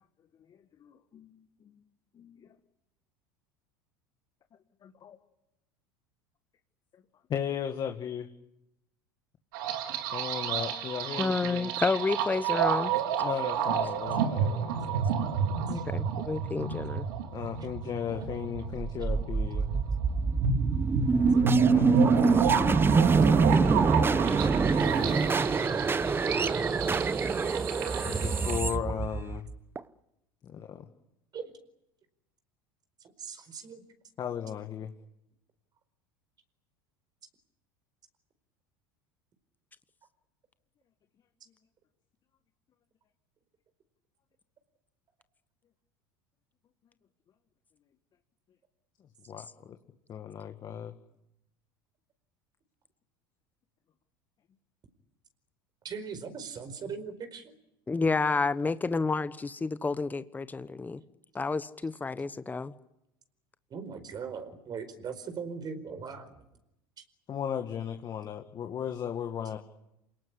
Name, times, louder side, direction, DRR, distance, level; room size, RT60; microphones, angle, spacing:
voice 1, 0.5-1.8 2.1-2.6 4.8-5.2 6.9-7.0 7.3-8.3 10.1-11.7 13.2-15.1 17.3-19.7 21.7-25.8 28.0-29.5 30.4-30.9 34.2-34.9 49.3-49.8 50.1-50.9 67.3-69.6, left 8 dB, 40° left, 6 dB, 2.0 m, -37 dB
sound 1, 9.5-28.6, right 7 dB, 70° right, 3.0 m, -31 dB
voice 2, 11.2-12.9 15.7-17.1 57.9-61.0 61.3-62.7, left 4 dB, 15° left, 14 dB, 1.1 m, -30 dB
sound 2, 18.8-29.8, right 4 dB, 20° right, 1.0 m, -25 dB
voice 3, 33.0-33.8 55.8-57.5 63.7-66.3, right 6 dB, 40° right, 10 dB, 4.7 m, -39 dB
28.0 x 18.5 x 9.9 m, 0.85 s
hypercardioid pair, 85°, 11 cm